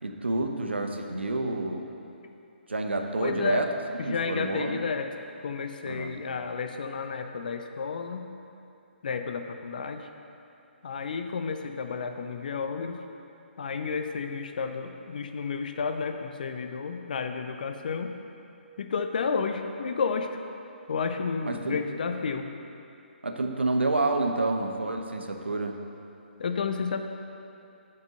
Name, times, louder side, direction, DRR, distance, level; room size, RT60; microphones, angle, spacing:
voice 1, 0.0-1.8 2.7-3.7 4.0-4.8 5.8-6.1 21.4-21.8 22.3-22.4 23.2-25.8, right 2 dB, 70° right, 4 dB, 0.9 m, -29 dB
voice 2, 3.2-3.6 4.0-5.1 5.4-8.3 9.0-10.1 10.8-13.0 13.6-18.1 18.8-20.3 20.9-22.5 26.4-27.0, left 5 dB, 45° left, 6 dB, 0.6 m, -31 dB
8.0 x 5.4 x 6.8 m, 2.7 s
figure-of-eight pair, 135°, 6 cm